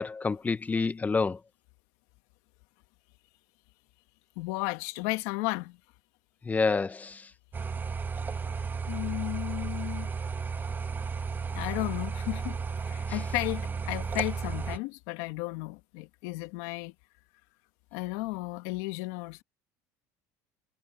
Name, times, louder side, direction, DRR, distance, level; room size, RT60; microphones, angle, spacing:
voice 1, 0.0-1.4 6.5-7.2, left 4 dB, 20° left, 0.9 m, -28 dB
voice 2, 4.4-5.8 8.9-10.1 11.5-16.9 17.9-19.4, left 22 dB, 75° left, 1.9 m, -34 dB
sound 1, 7.5-14.8, right 5 dB, 25° right, 1.8 m, -34 dB
supercardioid pair, 105°, 8 cm